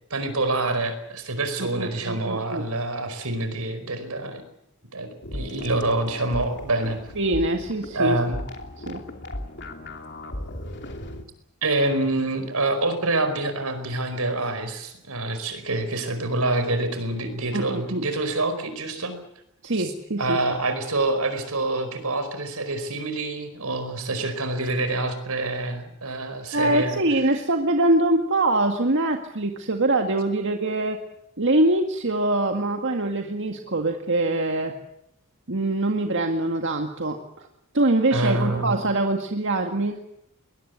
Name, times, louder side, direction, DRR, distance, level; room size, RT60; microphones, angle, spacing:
voice 1, 0.1-4.4 4.9-7.0 7.9-8.4 11.6-19.1 19.8-19.9 20.2-27.0 38.1-38.7, right 2 dB, 80° right, 9 dB, 4.9 m, -26 dB
voice 2, 1.6-2.6 7.2-8.2 8.9-9.0 17.5-18.1 19.6-20.4 26.5-31.0 31.4-34.7 35.5-37.5 37.7-40.0, right 2 dB, 55° right, 4 dB, 1.8 m, -23 dB
sound 1, 5.2-11.2, left 1 dB, 50° left, 2.9 m, -36 dB
22.0 x 21.0 x 8.2 m, 0.79 s
head